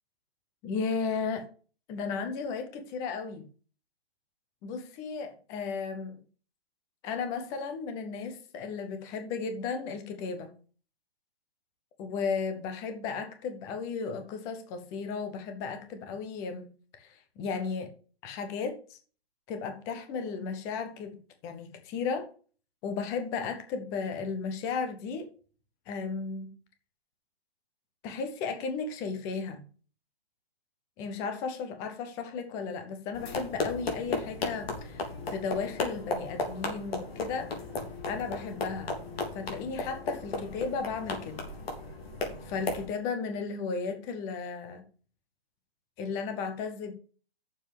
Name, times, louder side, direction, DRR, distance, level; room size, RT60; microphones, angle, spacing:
voice 1, 0.6-1.5 1.9-3.5 4.6-6.2 7.0-10.5 12.0-16.7 17.0-17.9 18.2-19.0 19.5-21.2 21.4-22.3 22.8-25.3 25.9-26.5 28.0-29.6 31.0-37.5 38.1-38.9 39.3-41.4 42.4-44.9 46.0-46.9, left 5 dB, 10° left, 0.6 m, -34 dB
sound 1, 33.1-42.9, left 3 dB, 75° left, 3.2 m, -35 dB
6.9 x 5.9 x 6.8 m
hypercardioid pair, 165°, 31 cm